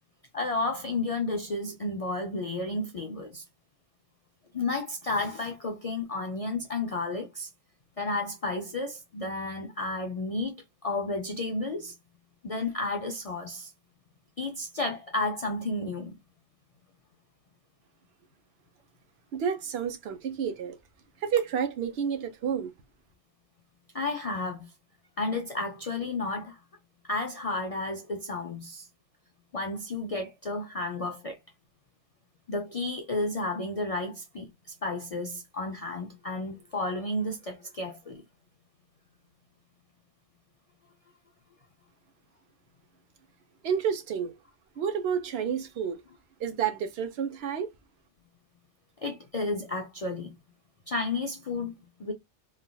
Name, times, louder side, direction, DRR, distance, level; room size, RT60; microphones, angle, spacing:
voice 1, 0.3-3.4 4.5-7.5 8.0-11.9 12.4-13.7 14.4-16.1 23.9-24.7 25.2-26.6 27.0-28.9 29.5-31.4 32.5-34.5 34.8-38.2 49.0-50.3 50.9-52.1, left 2 dB, 60° left, 0.3 m, -32 dB
voice 2, 19.3-20.7 21.2-22.7 43.6-44.3 44.8-46.0 46.4-47.7, right 7 dB, 65° right, 0.9 m, -30 dB
3.3 x 2.3 x 2.2 m
omnidirectional pair, 1.2 m